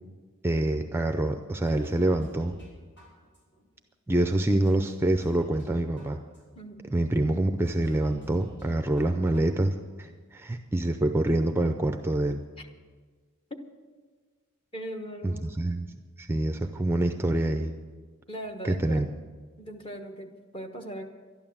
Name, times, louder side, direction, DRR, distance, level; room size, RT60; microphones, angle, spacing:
voice 1, 0.4-2.5 4.1-6.2 6.9-12.4 15.2-15.8 16.2-17.7 18.6-19.1, right 1 dB, 10° right, 6 dB, 0.5 m, -26 dB
sound 1, 1.7-2.7 3.0-3.6 4.1-4.2 4.7-5.7 6.0-6.6 7.1-7.2 7.7-8.7 9.0-9.6 9.9-10.0, equal, 60° left, 5.7 m, -48 dB
voice 2, 14.7-15.4 18.3-19.0 19.6-21.1, right 1 dB, 25° left, 4 dB, 1.2 m, -39 dB
12.0 x 11.0 x 7.3 m, 1.5 s
head